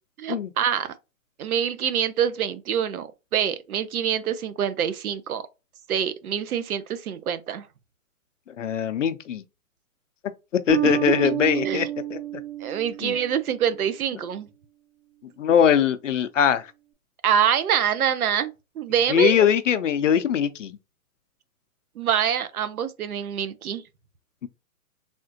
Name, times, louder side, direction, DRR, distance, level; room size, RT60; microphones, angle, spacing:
voice 1, 0.2-0.9 1.4-5.4 5.9-7.7 10.8-10.9 11.2-11.3 11.6-11.9 12.6-14.5 17.2-19.5 22.0-23.8, right 9 dB, 75° right, 0.7 m, -25 dB
voice 2, 8.6-9.4 10.5-11.9 12.1-12.2 13.0-13.2 15.4-16.7 19.1-20.8 24.4-24.5, left 8 dB, 60° left, 0.5 m, -21 dB
Bass guitar, 10.7-13.7, right 13 dB, 50° right, 1.1 m, -29 dB
3.5 x 2.5 x 2.6 m
hypercardioid pair, 175°, 43 cm